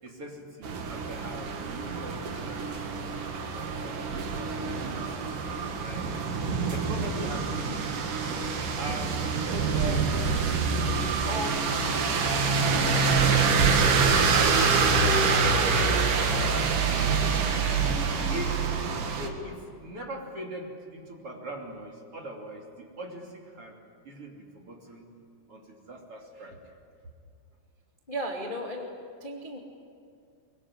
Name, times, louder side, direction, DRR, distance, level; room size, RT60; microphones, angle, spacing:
voice 1, 0.0-6.2 6.7-8.2 8.5-9.2 9.5-10.8 11.1-16.1 16.4-17.8 18.3-18.7 19.1-23.8 24.0-25.1 25.5-26.6, right 1 dB, 35° right, 0 dB, 3.1 m, -41 dB
sound 1, 0.6-19.3, right 4 dB, 55° right, 2.9 m, -26 dB
voice 2, 28.1-29.6, right 1 dB, 20° left, -1 dB, 1.2 m, -35 dB
24.0 x 23.0 x 9.9 m, 2.3 s
omnidirectional pair, 5.4 m